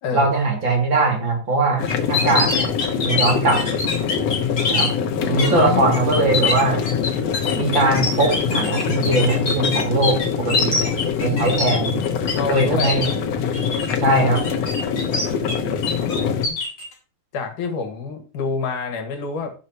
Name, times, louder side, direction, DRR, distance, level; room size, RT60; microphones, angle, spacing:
voice 1, 0.1-2.7 3.0-3.6 4.7-4.9 5.2-6.8 7.5-10.9 11.2-12.0 12.5-13.1 14.0-14.4, right 2 dB, 40° right, 3.1 m, -20 dB
sound 1, 1.8-16.5, left 6 dB, 65° left, 1.9 m, -24 dB
sound 2, 1.9-4.9 5.4-5.6 5.9-12.3 12.6-13.1 13.5-13.9 14.3-15.5 15.8-16.8, left 4 dB, 45° left, 4.0 m, -24 dB
voice 2, 5.2-5.9 12.3-13.0 15.9-16.6 17.3-19.5, left 5 dB, 80° left, 3.2 m, -27 dB
16.5 x 6.5 x 2.9 m
omnidirectional pair, 3.5 m